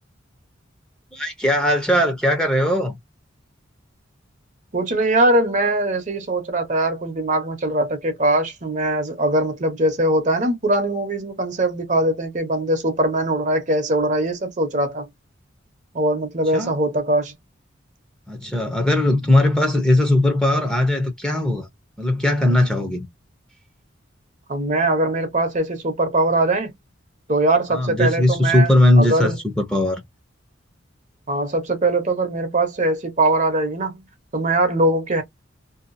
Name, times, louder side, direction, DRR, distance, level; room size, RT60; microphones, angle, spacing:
voice 1, 1.1-3.0 16.5-16.7 18.3-21.7 22.0-23.1 27.7-30.0, left 1 dB, 5° left, 0.7 m, -19 dB
voice 2, 4.7-15.1 15.9-17.3 24.5-26.7 27.3-28.7 29.0-29.4 31.3-34.0 34.3-35.2, right 1 dB, 40° right, 0.8 m, -21 dB
2.7 x 2.3 x 2.5 m
head